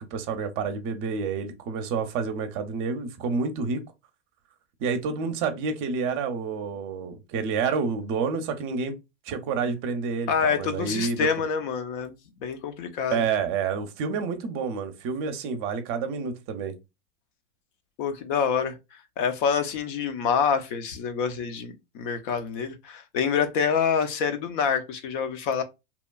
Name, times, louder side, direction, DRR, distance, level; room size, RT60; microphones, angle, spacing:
voice 1, 0.0-3.8 4.8-9.0 9.3-11.3 13.1-16.7, right 5 dB, 40° right, 0.6 m, -29 dB
voice 2, 10.3-12.1 12.4-13.2 18.0-18.8 19.2-25.6, left 6 dB, 50° left, 0.6 m, -26 dB
3.0 x 2.2 x 2.2 m
hypercardioid pair, 110°, 33 cm